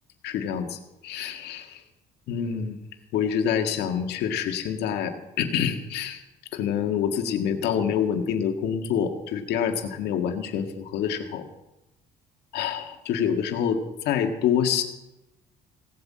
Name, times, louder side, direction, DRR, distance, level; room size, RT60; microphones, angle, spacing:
voice 1, 0.2-1.8 2.3-2.8 3.1-6.2 6.5-11.5 12.5-14.8, left 8 dB, 80° left, 5 dB, 1.7 m, -27 dB
17.0 x 8.3 x 7.5 m, 0.95 s
cardioid pair, 110°, 17 cm